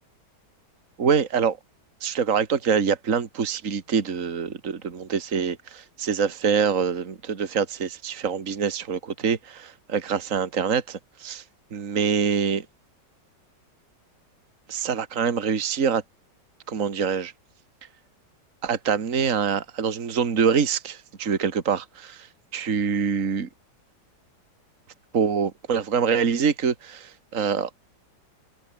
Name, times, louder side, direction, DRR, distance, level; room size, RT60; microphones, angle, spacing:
voice 1, 1.0-1.6 2.0-11.4 11.7-12.7 14.7-16.0 16.7-17.3 18.6-22.3 22.5-23.5 25.1-27.7, right 6 dB, 45° right, 2.2 m, -25 dB
omnidirectional pair, 1.9 m